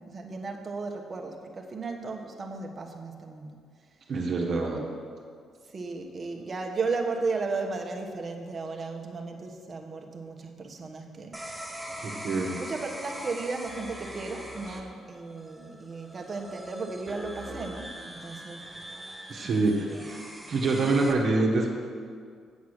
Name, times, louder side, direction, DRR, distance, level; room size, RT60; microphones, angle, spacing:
voice 1, 0.0-3.6 4.4-4.7 5.7-11.4 12.6-18.7 19.4-20.0, right 4 dB, 35° right, 3 dB, 1.2 m, -35 dB
voice 2, 4.1-4.9 12.0-12.6 19.3-20.2 20.5-21.7, right 3 dB, 55° right, -1 dB, 1.4 m, -26 dB
sound 1, 11.3-21.1, equal, 5° right, 1.1 m, -42 dB
8.1 x 7.3 x 6.6 m, 2.1 s
cardioid pair, 90°, 0 cm